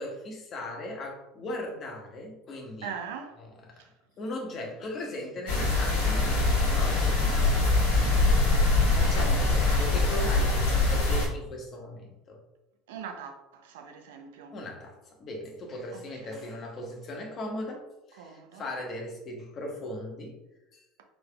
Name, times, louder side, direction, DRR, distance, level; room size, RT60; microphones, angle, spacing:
voice 1, 0.0-2.9 3.4-3.8 4.2-7.7 8.9-12.4 14.5-20.4 20.7-20.8, left 1 dB, 45° left, 1.3 m, -38 dB
voice 2, 2.8-3.4 3.8-3.9 8.8-9.4 12.9-14.6 15.9-16.4 18.2-18.6, right 6 dB, 75° right, 0.6 m, -42 dB
sound 1, 5.5-11.3, left 3 dB, 80° left, 1.2 m, -23 dB
5.0 x 3.9 x 2.3 m
hypercardioid pair, 75°, 0 cm